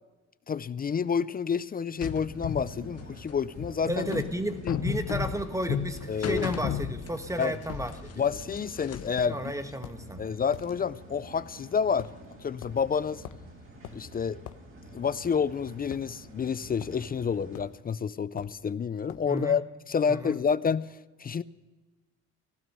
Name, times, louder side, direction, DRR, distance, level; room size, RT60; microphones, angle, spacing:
voice 1, 0.5-4.0 4.6-4.8 6.1-6.5 7.4-7.5 8.2-9.4 10.2-12.1 12.4-13.2 13.9-14.4 14.9-20.9 21.2-21.4, left 6 dB, 30° left, 0.5 m, -29 dB
sound 1, 2.0-7.4 7.7-9.2, left 8 dB, 55° left, 0.9 m, -33 dB
sound 2, 2.0-17.6, equal, 45° right, 3.5 m, -47 dB
voice 2, 3.8-8.2 9.3-10.2 19.3-19.6 20.1-20.4, right 1 dB, 10° right, 1.2 m, -33 dB
sound 3, 9.2-9.3 9.8-10.0 10.5-10.7 12.0-12.2 12.6-12.8 13.2-13.5 13.8-14.0 14.5-14.6 15.9-16.5 16.8-17.0 17.5-17.8 18.4-18.6 19.1-19.3, left 11 dB, 85° left, 0.9 m, -44 dB
15.5 x 12.5 x 6.8 m
cardioid pair, 90°, 30 cm